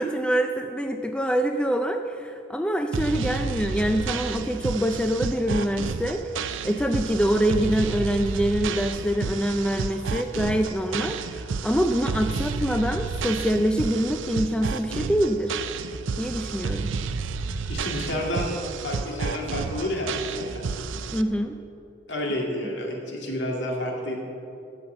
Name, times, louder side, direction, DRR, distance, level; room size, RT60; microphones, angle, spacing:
voice 1, 0.0-6.2 6.6-15.6 16.2-16.9 21.1-21.6, equal, 5° left, 5 dB, 0.3 m, -25 dB
sound 1, 2.9-21.2, right 4 dB, 85° right, 0.5 m, -31 dB
voice 2, 17.7-18.5 18.8-20.7 22.1-24.2, left 1 dB, 65° left, 0 dB, 2.1 m, -30 dB
13.5 x 5.5 x 7.8 m, 2.7 s
head